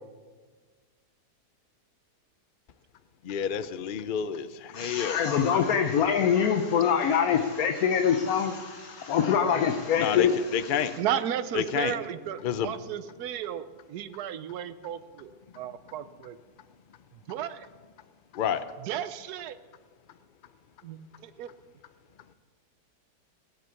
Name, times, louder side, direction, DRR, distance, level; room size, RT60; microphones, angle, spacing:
voice 1, 3.2-5.2 10.0-10.3 10.5-10.9 11.5-11.9 12.4-12.7 18.3-18.6, left 8 dB, 85° left, 12 dB, 0.4 m, -29 dB
voice 2, 4.7-11.0, left 7 dB, 65° left, 7 dB, 1.2 m, -25 dB
voice 3, 11.0-16.4 17.3-17.7 18.8-19.6 20.8-21.5, right 10 dB, 70° right, 13 dB, 1.2 m, -34 dB
18.0 x 8.1 x 7.0 m, 1.5 s
omnidirectional pair, 1.8 m